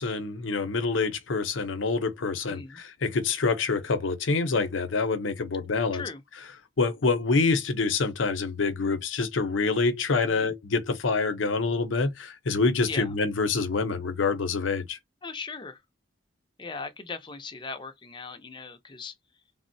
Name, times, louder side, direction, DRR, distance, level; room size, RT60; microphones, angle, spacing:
voice 1, 0.0-6.0 6.8-15.0, left 4 dB, 90° left, 0.7 m, -26 dB
voice 2, 2.5-2.8 5.9-6.2 10.2-10.5 12.9-13.1 15.2-15.8 16.6-19.1, left 4 dB, 25° left, 0.5 m, -38 dB
3.4 x 2.0 x 2.6 m
head